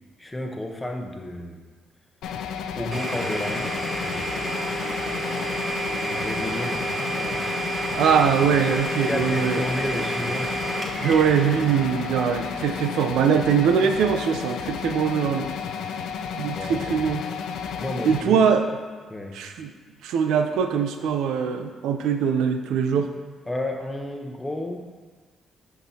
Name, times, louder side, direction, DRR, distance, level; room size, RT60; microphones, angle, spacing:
voice 1, 0.2-1.6 2.7-4.4 6.0-6.9 7.2-7.6 9.0-10.7 16.5-17.1 17.8-18.4 19.1-19.4 23.5-24.8, left 1 dB, 15° left, 3 dB, 0.9 m, -32 dB
sound 1, 2.2-18.2, left 7 dB, 85° left, 0.5 m, -32 dB
Domestic sounds home sounds, 2.9-14.6, right 2 dB, 20° right, 1.1 m, -31 dB
voice 2, 7.9-9.6 11.0-15.5 16.4-17.2 18.0-18.6 19.3-19.7 20.0-23.1, right 7 dB, 85° right, 6 dB, 0.5 m, -22 dB
9.2 x 5.9 x 2.8 m, 1.5 s
cardioid pair, 90°, 0 cm